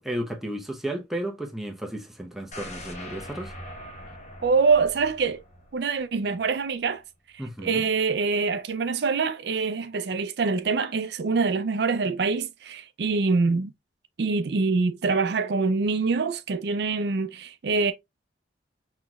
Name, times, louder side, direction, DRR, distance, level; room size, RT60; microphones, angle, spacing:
voice 1, 0.0-3.6 7.4-7.9, right 1 dB, ahead, 0.8 m, -33 dB
sound 1, 2.5-6.5 6.9-7.0, left 1 dB, 40° left, 1.1 m, -42 dB
voice 2, 4.4-5.4 5.7-7.0 7.3-13.7 14.2-17.9, right 4 dB, 60° right, 0.4 m, -25 dB
5.7 x 3.0 x 2.3 m
head